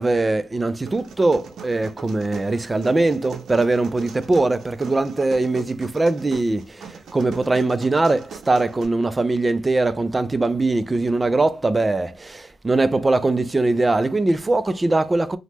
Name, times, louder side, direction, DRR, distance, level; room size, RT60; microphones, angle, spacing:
voice 1, 0.0-6.6 7.1-8.2 8.5-12.1 12.6-15.4, right 2 dB, 20° right, 0.3 m, -21 dB
sound 1, 0.9-8.8, right 6 dB, 70° right, 0.6 m, -41 dB
3.1 x 2.1 x 2.9 m
cardioid pair, 90°, 0 cm